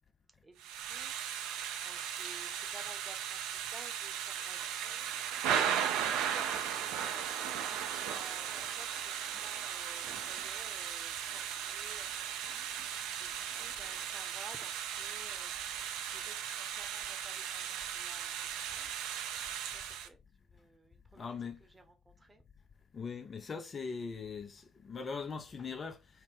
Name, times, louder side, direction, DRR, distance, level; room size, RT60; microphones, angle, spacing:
voice 1, 0.4-1.5 1.8-5.1 6.0-12.7 13.2-15.5 16.1-18.9 19.7-20.2 20.5-21.3 21.6-22.4, right 2 dB, 20° right, 0.8 m, -55 dB
Thunder / Rain, 0.6-20.1, right 9 dB, 70° right, 0.3 m, -37 dB
voice 2, 21.2-21.6 22.9-26.2, left 5 dB, 40° left, 0.5 m, -41 dB
2.8 x 2.0 x 3.5 m
figure-of-eight pair, 45°, 0 cm